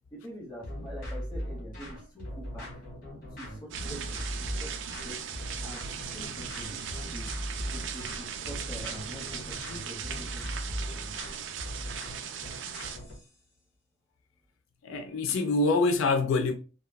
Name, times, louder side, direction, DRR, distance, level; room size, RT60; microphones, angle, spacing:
voice 1, 0.1-2.8 3.4-5.3 5.6-7.3 7.7-11.1, equal, 20° left, 1.1 m, -45 dB
sound 1, 0.6-13.3, equal, 45° left, 1.2 m, -39 dB
sound 2, 3.7-13.0, right 7 dB, 65° right, 0.3 m, -38 dB
voice 2, 14.8-16.5, left 3 dB, 80° left, 0.4 m, -25 dB
3.2 x 2.2 x 2.2 m
head